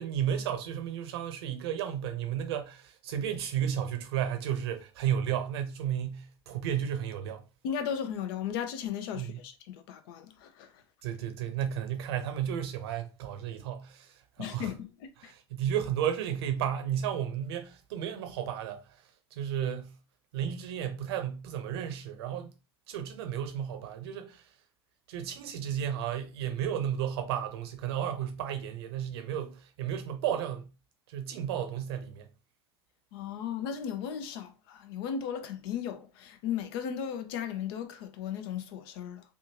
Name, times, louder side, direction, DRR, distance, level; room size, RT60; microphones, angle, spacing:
voice 1, 0.0-7.4 9.1-9.3 11.0-14.7 15.2-19.0 19.3-20.0 20.3-22.5 22.9-24.5 25.1-30.7 31.1-32.3, right 9 dB, 65° right, 0.7 m, -33 dB
voice 2, 7.6-10.7 14.4-15.3 33.1-39.2, left 8 dB, 60° left, 0.6 m, -36 dB
3.4 x 2.5 x 2.8 m
hypercardioid pair, 80°, 14 cm